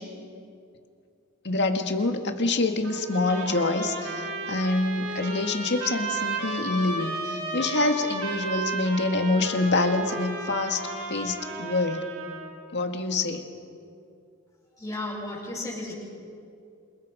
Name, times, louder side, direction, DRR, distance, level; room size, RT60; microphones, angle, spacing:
voice 1, 1.4-12.1 12.7-13.5, left 2 dB, 55° left, 5 dB, 2.0 m, -26 dB
Trumpet, 2.8-12.5, right 2 dB, 75° right, 7.5 m, -34 dB
voice 2, 14.8-15.9, left 2 dB, 15° left, -4 dB, 7.9 m, -34 dB
28.0 x 27.5 x 5.2 m, 2.4 s
head